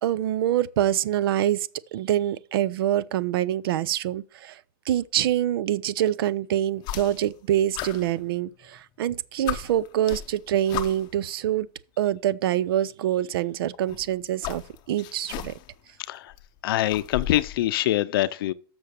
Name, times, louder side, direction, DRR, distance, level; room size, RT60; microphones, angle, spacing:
voice 1, 0.0-4.6 4.9-11.7 12.0-14.6 14.9-15.6, right 12 dB, 80° right, 0.6 m, -25 dB
sound 1, 6.8-7.4 7.7-8.8 9.1-9.2 9.5-11.2 12.3-12.4 13.7-15.8 16.1-17.6, left 14 dB, 35° left, 0.7 m, -36 dB
voice 2, 16.6-18.5, left 14 dB, 75° left, 0.5 m, -24 dB
6.8 x 6.2 x 6.4 m
supercardioid pair, 150°, 12 cm